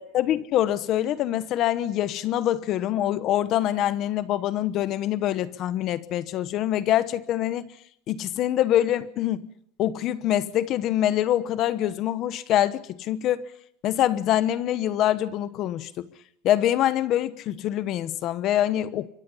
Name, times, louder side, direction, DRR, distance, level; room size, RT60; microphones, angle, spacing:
voice 1, 0.0-7.6 8.1-9.4 9.8-13.5 13.8-16.1 16.4-19.1, left 12 dB, 40° left, 1.0 m, -25 dB
27.0 x 24.5 x 5.6 m
cardioid pair, 165°, 0 cm